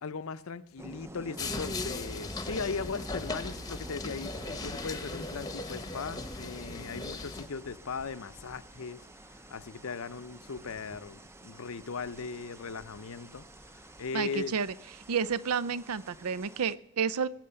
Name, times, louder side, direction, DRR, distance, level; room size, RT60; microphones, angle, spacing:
voice 1, 0.0-9.1 9.3-14.5, left 5 dB, 70° left, 15 dB, 0.6 m, -38 dB
sound 1, 0.8-16.7, right 1 dB, 10° right, 0.5 m, -50 dB
sound 2, 1.4-7.5, left 2 dB, 15° left, 0.9 m, -38 dB
voice 2, 14.1-14.7 15.1-17.3, right 6 dB, 85° right, 18 dB, 0.5 m, -30 dB
20.5 x 7.7 x 6.9 m, 0.81 s
head